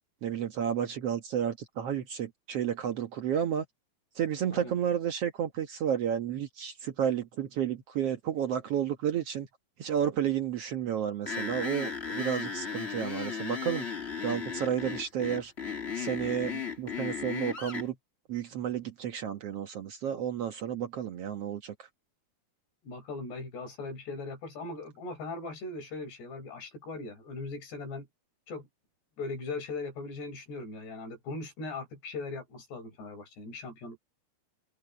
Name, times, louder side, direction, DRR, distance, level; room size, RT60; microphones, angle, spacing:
voice 1, 0.2-3.6 4.1-9.5 9.8-13.8 14.2-15.5 15.9-17.9 18.3-21.7, right 9 dB, 85° right, 1.3 m, -31 dB
sound 1, 11.3-17.9, left 6 dB, 70° left, 0.6 m, -36 dB
voice 2, 22.8-28.1 28.5-28.7 29.2-34.0, left 3 dB, 90° left, 6.9 m, -39 dB
omnidirectional pair, 4.6 m